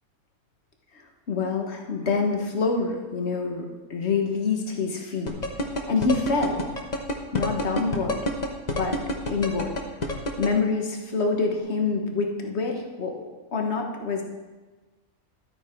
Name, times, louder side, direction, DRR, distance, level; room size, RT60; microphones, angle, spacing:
voice 1, 1.3-5.4 5.9-6.6 7.3-8.2 8.7-8.9 9.3-9.8 10.4-14.2, left 4 dB, 50° left, 2 dB, 1.6 m, -26 dB
sound 1, 5.3-10.5, left 1 dB, 30° left, 1.1 m, -27 dB
12.5 x 8.8 x 4.6 m, 1.3 s
omnidirectional pair, 1.5 m